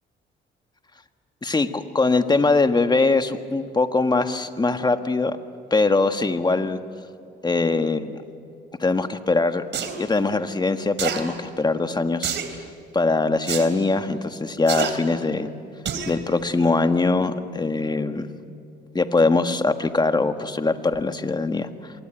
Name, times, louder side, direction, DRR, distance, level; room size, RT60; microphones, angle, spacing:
voice 1, 1.4-5.4 5.7-6.8 7.4-8.2 8.8-9.7 10.0-12.6 12.9-15.5 16.1-18.3 18.9-21.9, left 3 dB, 20° left, 8 dB, 1.6 m, -22 dB
sound 1, 9.7-10.0 11.0-11.2 12.2-12.5 13.5-13.7 14.7-14.9 15.8-16.1 16.6-16.7, right 8 dB, 65° right, 3.2 m, -27 dB
27.5 x 23.0 x 9.0 m, 2.5 s
cardioid pair, 90°, 20 cm